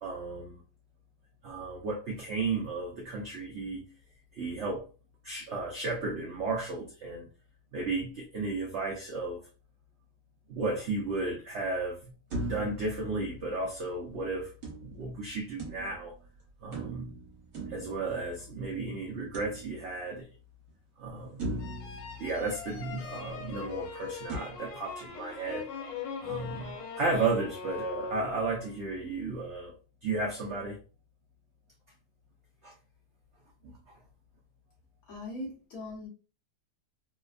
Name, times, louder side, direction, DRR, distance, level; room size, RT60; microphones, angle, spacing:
voice 1, 0.0-0.6 1.4-3.9 4.3-4.8 5.2-7.3 7.7-9.4 10.5-12.1 12.5-14.5 14.8-16.1 16.6-17.1 17.7-20.3 21.0-21.6 22.2-25.7 26.2-29.7 30.0-30.8 32.6-32.7 33.6-33.7, right 3 dB, 75° right, -1 dB, 0.6 m, -34 dB
sound 1, 12.3-13.9 14.6-16.2 16.7-18.6 19.3-20.2 20.7-20.8 21.4-23.1 24.3-24.4, right 1 dB, 45° right, 1.3 m, -40 dB
sound 2, 21.6-28.8, left 5 dB, 85° left, 1.2 m, -41 dB
voice 2, 35.1-36.1, left 2 dB, 60° left, -1 dB, 1.4 m, -40 dB
3.3 x 2.1 x 2.3 m, 0.36 s
omnidirectional pair, 1.9 m